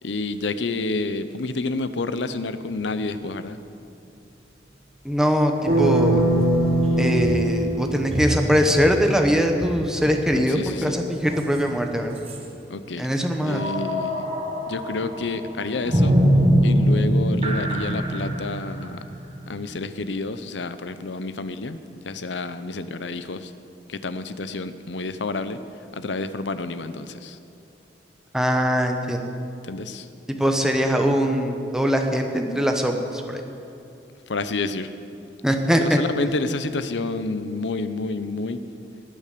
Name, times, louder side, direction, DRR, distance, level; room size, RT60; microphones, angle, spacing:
voice 1, 0.0-3.6 10.3-11.0 12.7-13.1 13.4-14.2 14.7-16.2 16.6-19.0 19.5-21.8 22.0-23.5 23.9-25.6 25.9-27.4 29.7-30.1 34.3-34.9 35.7-38.6, left 3 dB, 80° left, 12 dB, 0.7 m, -29 dB
sound 1, 2.8-2.9 6.1-11.9 12.2-12.4 13.4-20.0, equal, 35° right, 1.5 m, -25 dB
voice 2, 5.0-6.2 7.0-12.2 13.0-13.6 28.3-29.3 30.3-33.4 35.4-36.0, equal, 5° right, 3 dB, 1.0 m, -22 dB
sound 2, 5.7-8.6, right 1 dB, 55° right, 1.9 m, -21 dB
19.0 x 8.8 x 6.8 m, 2.8 s
head